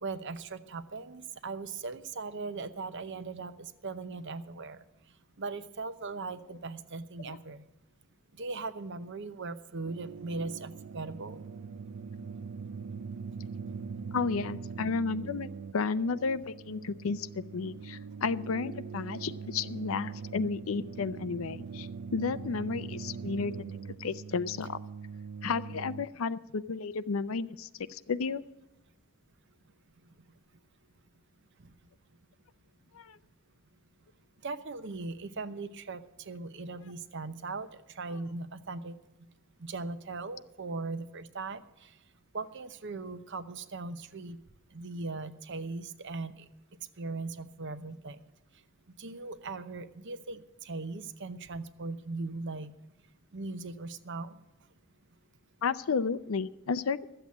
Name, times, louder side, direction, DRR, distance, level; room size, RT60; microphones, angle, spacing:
voice 1, 0.0-4.8 5.4-7.6 8.4-11.4 34.4-38.9 39.6-41.9 42.3-44.4 44.7-46.5 47.0-48.2 49.0-52.7 53.3-54.4, right 3 dB, 55° right, 12 dB, 0.8 m, -39 dB
sound 1, 9.8-26.0, right 5 dB, 80° right, 0.4 m, -42 dB
voice 2, 14.1-15.5 15.7-24.8 25.4-28.4 32.9-33.2 55.6-57.0, left 5 dB, 70° left, 14 dB, 0.5 m, -32 dB
12.5 x 8.0 x 8.2 m, 0.95 s
head